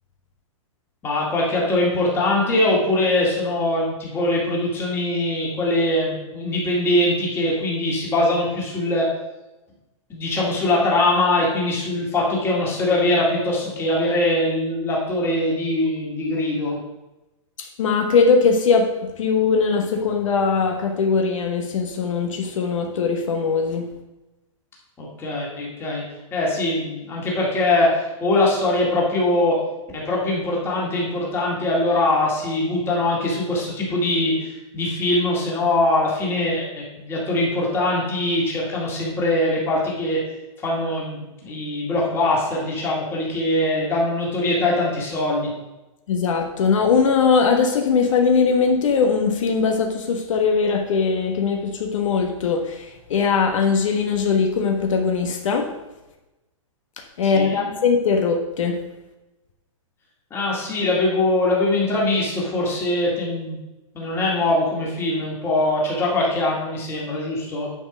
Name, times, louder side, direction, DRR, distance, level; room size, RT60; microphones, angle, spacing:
voice 1, 1.0-9.1 10.1-16.8 25.0-26.0 26.3-29.6 29.9-40.2 40.6-45.5 57.2-57.7 60.3-63.6 63.9-67.7, left 2 dB, 15° left, -4 dB, 2.1 m, -22 dB
voice 2, 17.6-23.9 46.1-55.7 57.2-58.8, left 5 dB, 65° left, 3 dB, 1.3 m, -20 dB
9.7 x 4.6 x 6.1 m, 1.0 s
hypercardioid pair, 165°, 17 cm